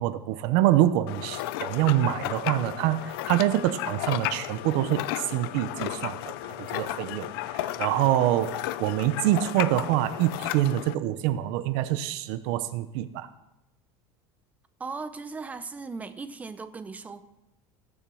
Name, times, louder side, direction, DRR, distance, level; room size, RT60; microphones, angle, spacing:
voice 1, 0.0-13.3, right 13 dB, 60° right, 12 dB, 0.8 m, -26 dB
sound 1, 1.1-10.9, left 15 dB, 85° left, 0.6 m, -34 dB
voice 2, 14.8-17.2, right 4 dB, 10° right, 11 dB, 0.8 m, -37 dB
19.0 x 7.3 x 6.3 m, 0.91 s
cardioid pair, 170°, 12 cm